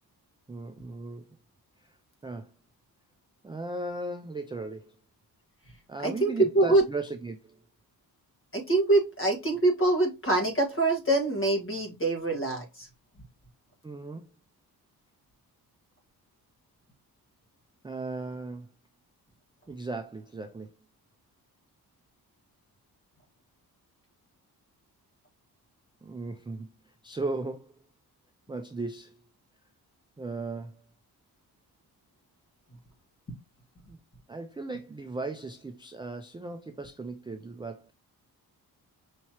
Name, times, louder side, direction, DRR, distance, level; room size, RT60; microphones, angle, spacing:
voice 1, 0.5-1.3 1.8-1.9 2.2-2.5 3.4-4.9 5.9-7.6 13.8-14.2 17.8-18.7 19.7-20.7 26.0-26.7 27.0-27.7 28.5-29.2 30.2-30.8 33.9-34.0 34.3-37.9, right 3 dB, 15° right, 0.3 m, -37 dB
voice 2, 6.0-6.8 8.5-12.9, right 2 dB, 30° left, 1.6 m, -24 dB
5.6 x 3.0 x 2.9 m
cardioid pair, 110°, 39 cm